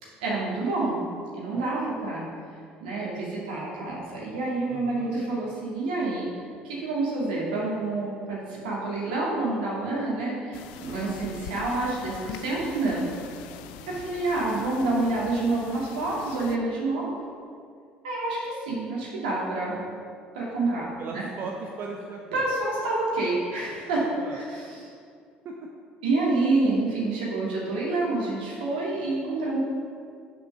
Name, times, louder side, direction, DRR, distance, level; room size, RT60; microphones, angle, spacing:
voice 1, 0.2-1.0 1.3-2.2 2.8-6.3 6.6-13.1 13.9-17.1 18.0-19.8 20.3-21.2 22.3-24.8 26.0-29.6, right 2 dB, 80° right, -5 dB, 2.3 m, -28 dB
voice 2, 4.7-5.1 13.8-14.0 21.0-22.4 24.2-24.4 25.4-25.5, right 4 dB, 50° right, 0 dB, 0.8 m, -38 dB
sound 1, 10.5-16.6, left 8 dB, 75° left, 0.4 m, -43 dB
6.8 x 5.3 x 6.2 m, 2.2 s
hypercardioid pair, 60°, 5 cm